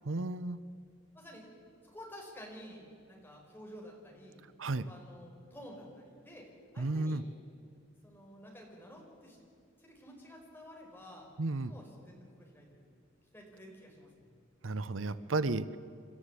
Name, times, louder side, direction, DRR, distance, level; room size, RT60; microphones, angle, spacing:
voice 1, 0.0-0.6 4.6-4.9 6.8-7.2 11.4-11.7 14.6-15.8, right 2 dB, 85° right, 15 dB, 0.8 m, -33 dB
voice 2, 1.8-6.5 6.7-7.2 8.0-9.4 9.8-12.9 13.3-14.4, equal, 10° left, -1 dB, 5.1 m, -51 dB
28.5 x 13.0 x 8.3 m, 2.4 s
head